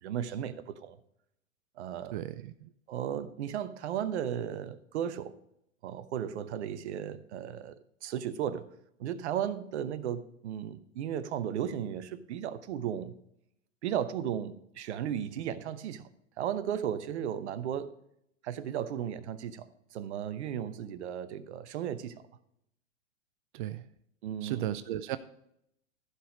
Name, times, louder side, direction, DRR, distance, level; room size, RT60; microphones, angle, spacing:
voice 1, 0.0-1.0 1.8-2.3 2.9-5.4 5.8-8.7 9.0-13.1 13.8-16.1 16.4-17.9 18.4-22.2 24.2-24.7, right 9 dB, 55° right, 1.0 m, -35 dB
voice 2, 2.1-2.7 23.5-23.9 24.4-25.2, right 13 dB, 40° right, 0.5 m, -35 dB
15.0 x 5.1 x 5.0 m
figure-of-eight pair, 105°, 39 cm